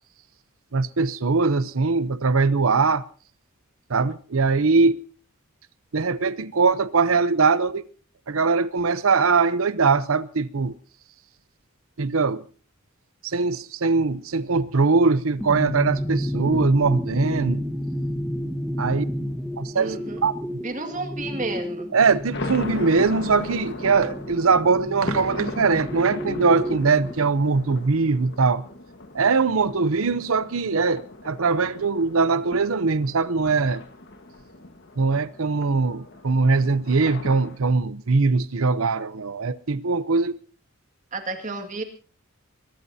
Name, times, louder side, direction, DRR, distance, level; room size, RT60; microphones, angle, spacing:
voice 1, 0.7-3.0 3.9-5.0 5.9-7.8 8.3-10.7 12.0-12.4 13.2-17.6 18.8-19.1 19.6-20.3 21.9-28.6 29.1-33.8 35.0-40.3, right 4 dB, 80° right, 0.7 m, -21 dB
sound 1, 15.4-27.1, equal, ahead, 1.4 m, -31 dB
voice 2, 19.8-20.2 20.6-21.9 41.1-41.8, right 3 dB, 35° right, 2.1 m, -31 dB
sound 2, 22.3-37.6, left 2 dB, 55° left, 1.5 m, -38 dB
22.5 x 20.5 x 2.8 m
head